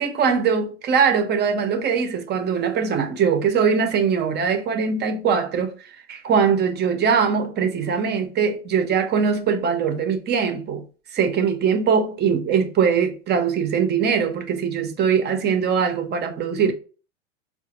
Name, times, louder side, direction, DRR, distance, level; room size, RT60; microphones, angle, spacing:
voice 1, 0.0-5.7 6.1-10.8 11.1-16.7, right 6 dB, 30° right, 0.7 m, -21 dB
4.7 x 2.2 x 3.0 m
hypercardioid pair, 95°, 35 cm